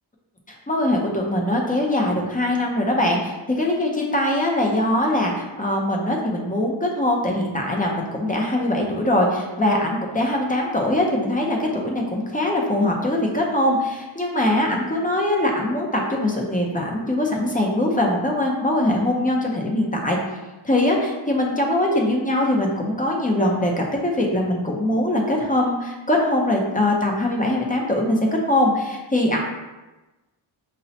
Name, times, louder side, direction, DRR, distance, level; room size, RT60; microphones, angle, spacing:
voice 1, 0.5-20.2 20.6-28.2 28.5-29.4, left 1 dB, 20° left, -1 dB, 0.5 m, -22 dB
5.2 x 2.1 x 2.7 m, 1.1 s
wide cardioid pair, 105°, 48 cm